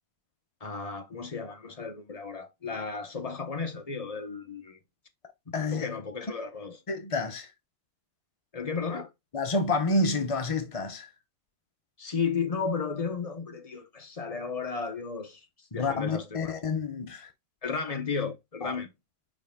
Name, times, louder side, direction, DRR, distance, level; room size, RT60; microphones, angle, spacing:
voice 1, 0.6-4.8 5.5-6.8 8.5-9.1 12.0-15.5 15.7-16.5 17.6-18.9, left 5 dB, 30° left, 0.8 m, -34 dB
voice 2, 5.5-5.9 6.9-7.5 9.3-11.1 15.7-17.3 18.6-18.7, left 2 dB, 60° left, 0.3 m, -29 dB
5.5 x 5.0 x 3.6 m
omnidirectional pair, 1.8 m